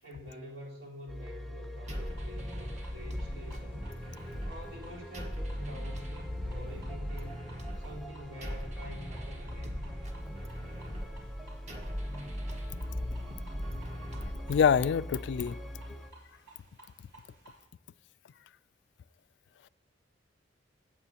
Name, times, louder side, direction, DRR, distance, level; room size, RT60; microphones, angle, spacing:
voice 1, 0.0-3.9 4.5-7.4 7.8-9.8, equal, 85° right, 4.0 m, -47 dB
sound 1, 1.1-16.1, equal, ahead, 0.6 m, -44 dB
sound 2, 1.7-17.6, right 2 dB, 70° right, 4.4 m, -58 dB
sound 3, 1.9-14.9, equal, 40° right, 1.5 m, -39 dB
voice 2, 14.5-15.6, left 7 dB, 65° left, 0.3 m, -25 dB
16.5 x 8.9 x 2.9 m
head